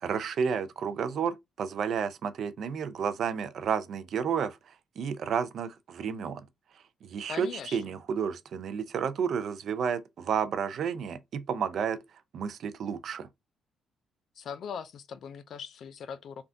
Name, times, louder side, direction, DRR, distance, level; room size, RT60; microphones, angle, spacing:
voice 1, 0.0-6.5 6.7-12.0 12.3-13.3, right 7 dB, 65° right, 0.4 m, -31 dB
voice 2, 7.3-7.8 14.4-16.4, left 7 dB, 65° left, 0.3 m, -40 dB
3.4 x 2.4 x 2.5 m
cardioid pair, 90°, 0 cm